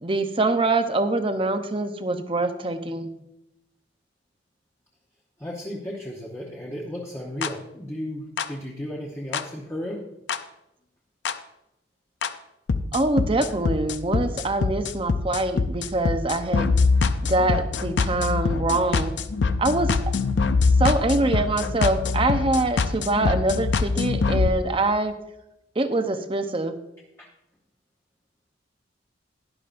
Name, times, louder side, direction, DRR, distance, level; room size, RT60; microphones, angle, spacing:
voice 1, 0.0-3.1 12.9-16.7 17.2-19.1 19.6-20.1 20.8-25.1 25.8-26.8, right 2 dB, 30° right, 8 dB, 0.7 m, -24 dB
voice 2, 5.4-10.0 27.2-27.3, equal, 15° left, -3 dB, 1.0 m, -34 dB
sound 1, 7.4-7.5 8.4-8.5 9.3-9.4 10.3-10.4 11.3-11.4 12.2-12.3 12.7-24.5, left 4 dB, 70° left, 0.5 m, -24 dB
12.0 x 10.5 x 2.6 m, 0.88 s
head